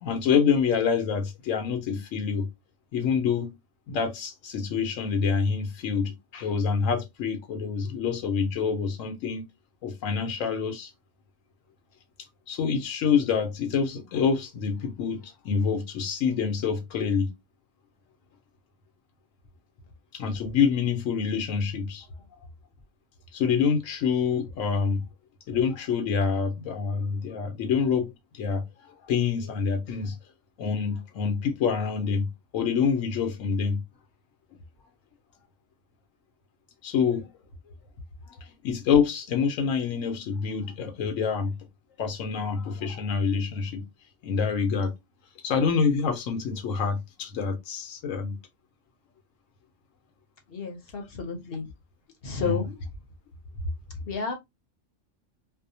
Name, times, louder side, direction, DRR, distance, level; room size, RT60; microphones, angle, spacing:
voice 1, 0.0-2.5 2.9-3.5 3.9-9.4 9.8-10.9 12.5-17.3 20.1-22.1 23.3-25.0 25.5-28.6 29.1-30.2 30.6-33.8 36.8-37.3 38.4-41.5 42.0-43.8 44.2-44.9 45.4-48.4 52.4-52.6, left 6 dB, 85° left, 1.0 m, -26 dB
voice 2, 50.5-51.7 52.2-52.8 54.1-54.3, left 5 dB, 55° left, 0.8 m, -31 dB
2.6 x 2.0 x 2.6 m
omnidirectional pair, 1.3 m